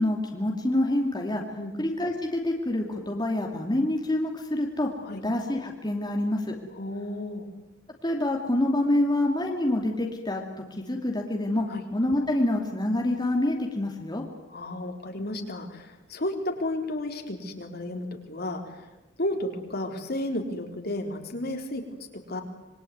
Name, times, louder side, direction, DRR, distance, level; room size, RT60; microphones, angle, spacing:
voice 1, 0.0-1.4 1.8-4.9 5.2-6.6 8.0-10.4 10.8-14.2, left 1 dB, 20° left, 1 dB, 2.6 m, -26 dB
voice 2, 6.8-7.5 11.7-11.8 14.5-18.8 19.2-22.0 22.3-22.4, left 1 dB, 55° left, 4 dB, 3.9 m, -32 dB
26.5 x 23.0 x 9.5 m, 1.1 s
head